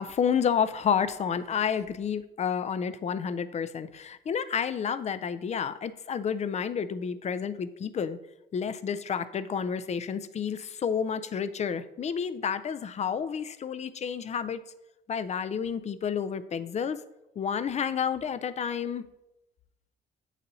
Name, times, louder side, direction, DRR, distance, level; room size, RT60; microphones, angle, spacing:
voice 1, 0.0-8.2 8.5-14.6 15.1-17.0 17.4-19.0, left 7 dB, 35° left, 13 dB, 0.4 m, -30 dB
8.6 x 4.0 x 2.7 m, 0.93 s
cardioid pair, 90°, 20 cm